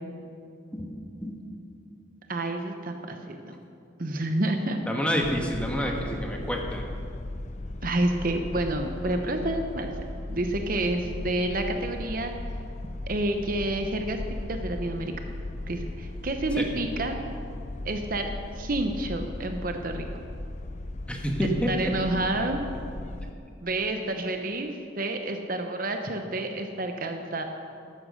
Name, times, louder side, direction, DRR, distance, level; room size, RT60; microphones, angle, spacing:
voice 1, 0.7-1.5 4.8-6.8 16.6-16.7 21.1-21.8, equal, 5° left, 0 dB, 1.4 m, -28 dB
voice 2, 2.3-3.6 4.0-4.8 7.8-9.9 10.3-12.3 13.0-14.2 14.5-15.1 15.7-17.2 17.8-18.3 18.6-20.0 21.4-22.6 23.6-27.4, right 1 dB, 45° right, 5 dB, 0.8 m, -29 dB
sound 1, 5.2-23.3, left 1 dB, 35° left, 0.5 m, -37 dB
13.5 x 11.0 x 6.4 m, 2.5 s
head